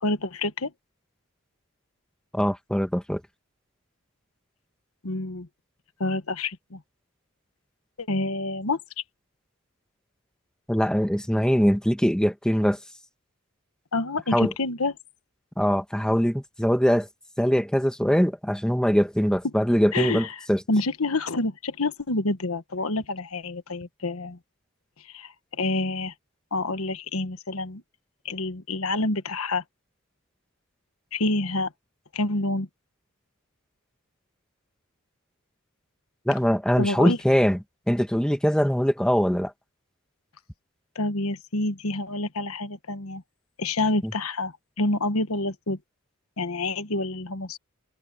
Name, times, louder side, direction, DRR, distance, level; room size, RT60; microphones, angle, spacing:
voice 1, 0.0-0.7 5.0-5.5 6.0-6.8 8.0-8.8 13.9-14.9 19.9-24.4 25.0-26.1 26.5-27.8 28.2-29.6 31.1-31.7 32.1-32.7 36.8-37.2 40.9-43.2 43.6-45.8 46.4-47.6, left 2 dB, 90° left, 1.4 m, -28 dB
voice 2, 2.3-3.2 10.7-12.8 14.3-14.5 15.6-17.1 17.4-20.6 36.2-37.6 37.9-39.5 44.0-44.1, equal, 5° left, 1.4 m, -22 dB
head